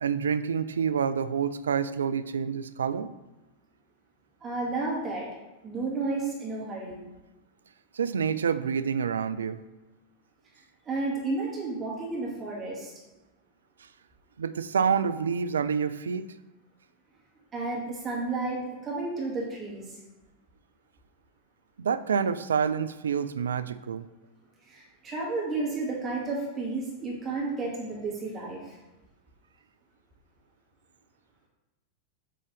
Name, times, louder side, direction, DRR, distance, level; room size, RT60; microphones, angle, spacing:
voice 1, 0.0-3.1 7.9-9.6 14.4-16.2 21.8-24.1, right 6 dB, 70° right, 13 dB, 0.3 m, -28 dB
voice 2, 4.4-5.3 5.6-7.0 10.9-12.9 17.5-20.0 24.7-28.8, right 3 dB, 25° right, -4 dB, 2.1 m, -32 dB
7.6 x 3.8 x 3.4 m, 1.1 s
figure-of-eight pair, 90°, 0 cm